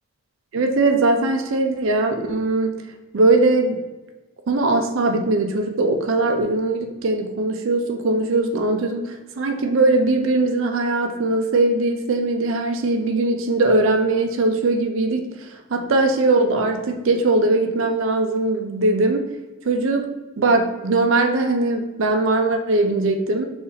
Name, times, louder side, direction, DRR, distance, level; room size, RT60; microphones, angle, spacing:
voice 1, 0.5-2.8 3.1-3.8 4.5-19.3 19.7-20.1 20.4-23.5, right 2 dB, 65° right, 4 dB, 0.4 m, -20 dB
4.0 x 2.5 x 3.8 m, 1.1 s
head